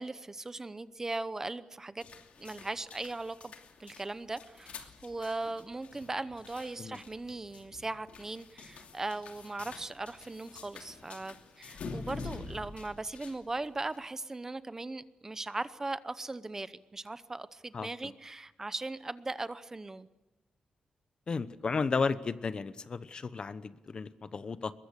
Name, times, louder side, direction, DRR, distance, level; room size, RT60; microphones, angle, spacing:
voice 1, 0.0-2.0 2.4-3.5 3.8-20.1, right 2 dB, 20° right, 14 dB, 0.8 m, -39 dB
sound 1, 2.0-14.0, left 4 dB, 85° left, 2.8 m, -47 dB
voice 2, 17.7-18.1 21.3-24.7, left 4 dB, 45° left, 14 dB, 1.0 m, -34 dB
22.5 x 22.0 x 8.3 m, 1.0 s
wide cardioid pair, 125°, 2 cm